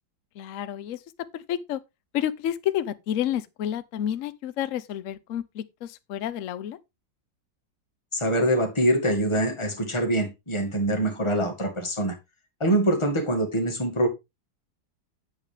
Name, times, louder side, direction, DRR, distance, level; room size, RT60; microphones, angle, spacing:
voice 1, 0.4-1.0 1.3-1.8 2.1-6.8, left 11 dB, 60° left, 0.9 m, -30 dB
voice 2, 8.1-12.2 12.6-14.1, right 1 dB, 15° left, 2.0 m, -24 dB
8.3 x 8.1 x 3.4 m
omnidirectional pair, 2.0 m